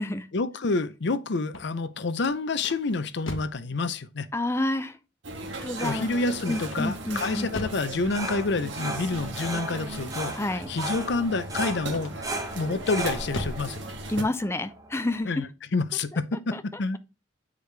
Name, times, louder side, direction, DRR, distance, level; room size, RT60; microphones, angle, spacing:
voice 1, 0.3-4.3 5.8-12.1 12.6-13.8 15.3-15.4 15.7-17.0, left 3 dB, 60° left, 0.6 m, -28 dB
sound 1, 1.5-3.7 6.6-7.9 11.8-12.4 12.9-13.7, left 2 dB, 85° left, 1.1 m, -39 dB
voice 2, 4.3-5.0 5.6-6.1 6.5-7.5 10.3-10.7 14.1-15.4 16.1-16.2 16.5-16.6, left 1 dB, 15° left, 0.5 m, -29 dB
sound 2, 5.2-14.2, right 2 dB, 70° right, 1.5 m, -38 dB
sound 3, 5.4-15.1, right 1 dB, 20° right, 1.3 m, -37 dB
8.4 x 4.9 x 3.3 m
head